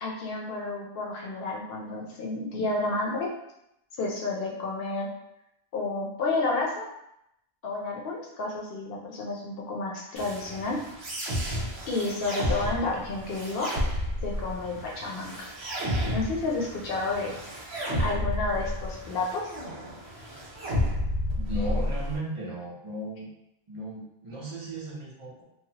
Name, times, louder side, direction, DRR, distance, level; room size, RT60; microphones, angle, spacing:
voice 1, 0.0-3.3 4.0-5.1 5.7-6.9 7.6-10.8 11.9-13.7 14.2-15.5 16.1-19.4, left 3 dB, 65° left, -2 dB, 0.8 m, -31 dB
sound 1, 10.2-22.2, equal, 80° right, 1.1 m, -32 dB
voice 2, 21.4-23.3 23.7-25.4, right 1 dB, 35° right, -4 dB, 0.7 m, -36 dB
3.1 x 2.0 x 2.8 m, 0.81 s
omnidirectional pair, 1.1 m